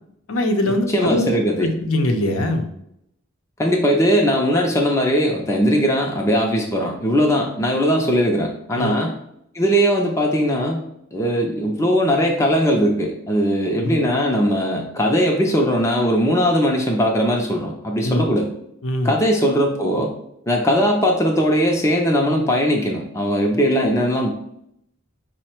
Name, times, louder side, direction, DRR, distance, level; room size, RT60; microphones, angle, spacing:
voice 1, 0.3-1.3 1.6-2.7 8.8-8.9 13.8-14.0 18.0-18.3 18.8-19.1, left 1 dB, 75° left, 5 dB, 0.6 m, -21 dB
voice 2, 0.9-1.7 3.6-9.1 9.5-10.8 11.1-18.5 19.0-20.1 20.5-24.3, equal, 15° left, 0 dB, 0.4 m, -19 dB
5.5 x 2.1 x 4.3 m, 0.76 s
head